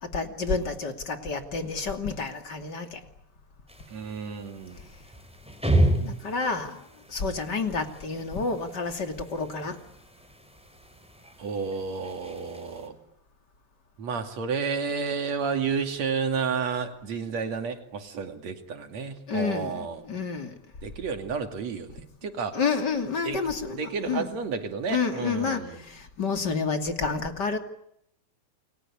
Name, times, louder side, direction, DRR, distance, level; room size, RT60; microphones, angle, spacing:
voice 1, 0.0-3.0 6.0-9.8 19.3-20.6 22.5-24.3 24.9-27.6, left 4 dB, 35° left, 6 dB, 3.2 m, -29 dB
sound 1, 3.7-12.9, right 1 dB, ahead, 5.3 m, -32 dB
voice 2, 3.9-4.8 11.4-13.0 14.0-20.0 20.8-22.6 23.2-23.4 23.7-25.9, right 5 dB, 65° right, 6 dB, 3.8 m, -31 dB
29.5 x 22.0 x 8.6 m, 0.74 s
omnidirectional pair, 3.3 m